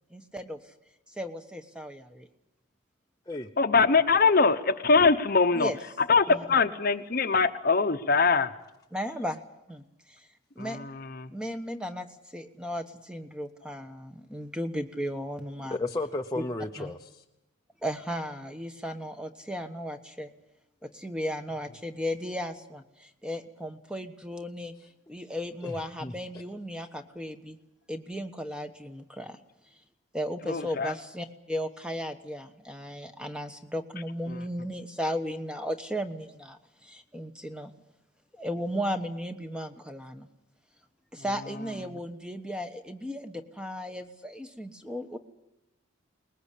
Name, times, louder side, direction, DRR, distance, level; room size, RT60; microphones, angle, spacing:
voice 1, 0.1-0.6 1.1-2.3 5.5-5.8 6.3-6.4 8.9-9.4 9.7-10.3 10.5-10.8 11.3-12.1 12.3-15.8 16.3-16.4 16.8-16.9 17.8-20.3 20.8-24.7 25.1-27.6 27.9-29.4 30.1-37.7 38.3-40.3 41.1-45.2, equal, 5° right, 7 dB, 1.1 m, -35 dB
voice 2, 3.6-5.7 6.1-8.5 10.6-11.3 30.5-30.9, left 4 dB, 45° left, 10 dB, 0.9 m, -23 dB
voice 3, 15.7-17.2 25.6-26.1, left 2 dB, 15° left, 2 dB, 0.8 m, -33 dB
22.5 x 20.5 x 8.4 m, 0.92 s
head